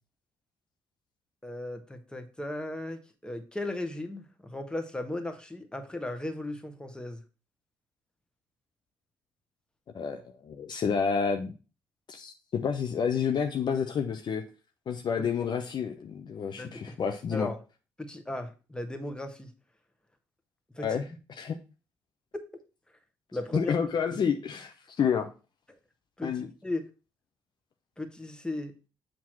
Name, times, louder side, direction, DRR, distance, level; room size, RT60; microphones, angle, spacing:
voice 1, 1.4-7.2 15.2-15.3 16.6-17.0 17.3-17.6 18.0-19.5 20.7-21.0 22.3-22.4 23.3-23.7 24.1-24.2 26.2-26.9 28.0-28.7, left 1 dB, 10° left, 7 dB, 1.3 m, -36 dB
voice 2, 9.9-11.5 12.1-14.4 14.9-17.5 20.8-21.6 23.5-25.3 26.2-26.5, left 6 dB, 45° left, 5 dB, 0.7 m, -29 dB
7.4 x 2.9 x 5.9 m, 0.32 s
figure-of-eight pair, 45°, 10 cm